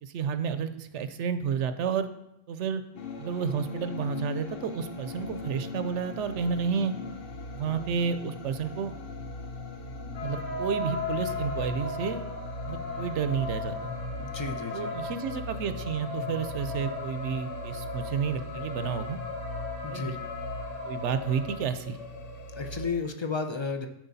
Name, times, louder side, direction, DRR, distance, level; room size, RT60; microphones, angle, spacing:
voice 1, 0.0-2.1 2.5-2.8 3.2-6.9 7.5-8.9 10.2-12.2 12.7-13.9 14.7-19.2 19.9-20.2 20.9-22.0, right 6 dB, 70° right, 10 dB, 0.9 m, -31 dB
sound 1, 3.0-22.9, left 2 dB, 55° left, 0.9 m, -39 dB
sound 2, 10.1-21.6, left 3 dB, 80° left, 2.1 m, -37 dB
voice 2, 14.2-14.9 19.8-20.2 22.6-23.9, left 4 dB, 35° left, 6 dB, 0.4 m, -33 dB
13.0 x 4.6 x 4.0 m, 0.84 s
omnidirectional pair, 1.3 m